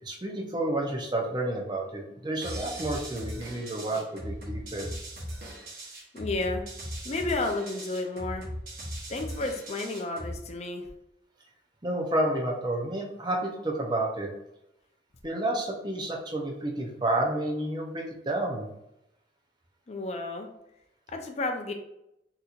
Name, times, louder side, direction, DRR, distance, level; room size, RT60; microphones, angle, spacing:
voice 1, 0.0-4.9 11.8-14.3 15.2-18.7, right 1 dB, 25° right, 0 dB, 0.6 m, -30 dB
sound 1, 2.4-10.4, equal, 55° right, 1.0 m, -39 dB
voice 2, 6.1-6.6 7.0-8.4 9.1-10.9 19.9-20.5 21.1-21.7, left 2 dB, 35° left, 4 dB, 0.4 m, -31 dB
4.1 x 2.8 x 2.4 m, 0.83 s
head